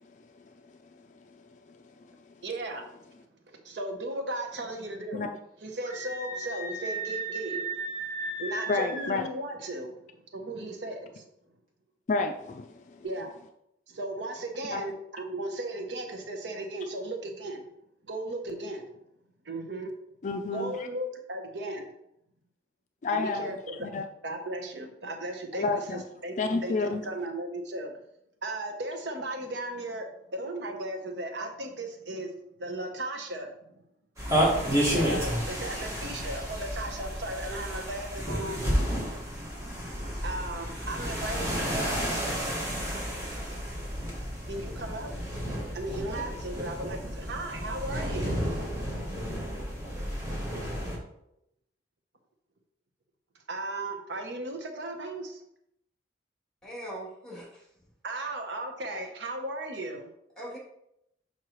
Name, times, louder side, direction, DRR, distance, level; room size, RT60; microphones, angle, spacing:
voice 1, 0.0-2.3 5.1-5.3 8.7-9.3 12.1-13.1 14.7-14.8 20.2-20.9 23.0-24.0 25.6-26.0 26.4-27.1, left 3 dB, 40° left, 6 dB, 0.4 m, -32 dB
voice 2, 2.4-2.8 3.5-5.3 5.6-7.8 8.4-10.1 10.3-11.2 13.0-13.3 13.9-17.7 18.1-18.9 19.4-20.0 20.5-21.9 23.1-23.8 24.2-25.7 26.2-26.4 26.6-27.9 28.4-32.3 32.6-33.5 34.9-38.6 40.2-42.0 44.5-45.2 45.7-48.3 53.5-55.4 58.0-60.1, right 1 dB, 75° right, 4 dB, 0.9 m, -36 dB
Screaming, 5.8-9.2, right 2 dB, 45° right, 1.9 m, -35 dB
sound 1, 34.2-51.0, equal, 15° right, 1.7 m, -31 dB
voice 3, 56.6-57.7 58.9-59.0 60.4-60.6, right 1 dB, 5° left, -6 dB, 2.5 m, -41 dB
6.2 x 5.4 x 3.0 m, 0.78 s
head